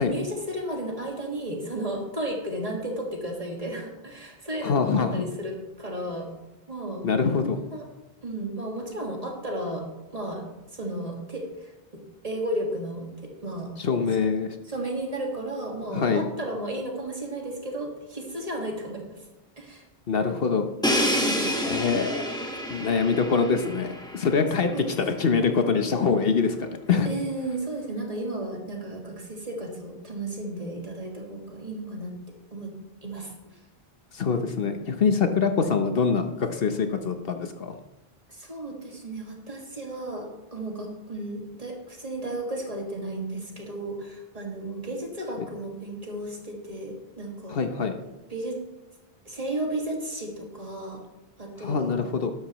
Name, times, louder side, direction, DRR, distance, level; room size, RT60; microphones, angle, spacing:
voice 1, 0.0-6.3 6.7-7.1 7.5-7.9 8.2-9.9 10.1-11.7 12.2-13.7 14.7-19.2 19.6-19.8 21.2-21.5 24.6-24.9 27.1-32.1 32.5-32.7 33.0-33.3 38.3-47.6 48.3-48.6 49.3-51.0 51.4-51.9, right 1 dB, 35° right, 1 dB, 2.0 m, -33 dB
voice 2, 4.6-5.2 7.0-7.6 13.8-14.5 15.9-16.2 20.1-20.7 21.6-22.3 22.7-24.7 25.0-27.1 34.1-37.8 47.5-47.9 51.6-52.3, left 5 dB, 65° left, 7 dB, 1.0 m, -24 dB
Crash cymbal, 20.8-24.6, equal, 5° left, 1.3 m, -28 dB
12.5 x 11.5 x 3.0 m, 0.99 s
omnidirectional pair, 1.1 m